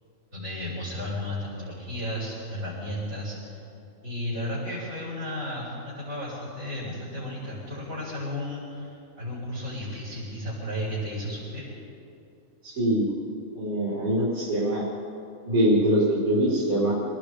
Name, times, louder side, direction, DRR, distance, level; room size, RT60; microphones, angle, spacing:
voice 1, 0.3-3.6 4.0-11.7, left 1 dB, 70° right, -10 dB, 7.8 m, -33 dB
voice 2, 12.6-13.1 13.5-14.8 15.4-16.9, right 1 dB, 85° right, -9 dB, 5.0 m, -23 dB
29.5 x 19.5 x 5.2 m, 2.6 s
omnidirectional pair, 1.4 m